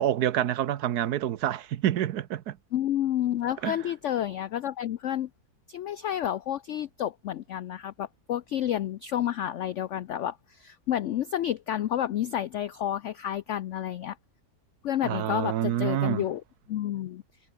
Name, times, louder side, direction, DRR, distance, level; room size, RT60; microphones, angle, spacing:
voice 1, 0.0-2.6 3.6-3.8 15.0-16.2, right 11 dB, 70° right, 1.3 m, -27 dB
voice 2, 2.7-5.3 5.7-14.2 14.8-16.4 16.7-17.2, left 11 dB, 75° left, 0.6 m, -30 dB
omnidirectional pair, 1.8 m